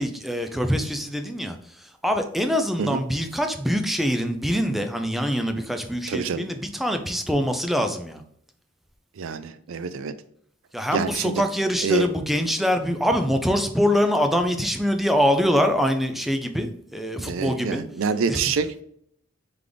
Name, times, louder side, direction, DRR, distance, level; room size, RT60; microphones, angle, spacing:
voice 1, 0.0-1.6 2.0-8.2 10.7-17.8 18.3-18.4, equal, ahead, 6 dB, 0.4 m, -24 dB
voice 2, 6.1-6.5 9.2-10.1 10.9-11.4 11.8-12.1 17.1-18.7, right 5 dB, 70° right, 12 dB, 0.4 m, -26 dB
3.8 x 3.4 x 3.3 m, 0.67 s
head